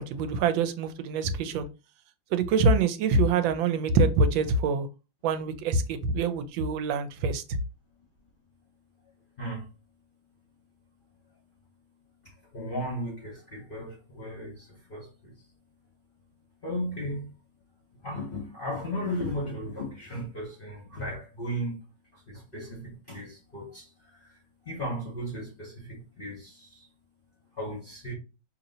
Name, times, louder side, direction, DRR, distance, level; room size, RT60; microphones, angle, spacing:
voice 1, 0.0-1.7 2.3-4.9 5.2-7.4, right 3 dB, 85° right, 1.3 m, -25 dB
voice 2, 9.4-9.7 12.2-15.3 16.6-17.3 18.0-21.8 22.1-24.4 24.7-26.9 27.5-28.1, equal, 45° left, 0.7 m, -36 dB
3.0 x 2.8 x 3.9 m
omnidirectional pair, 2.1 m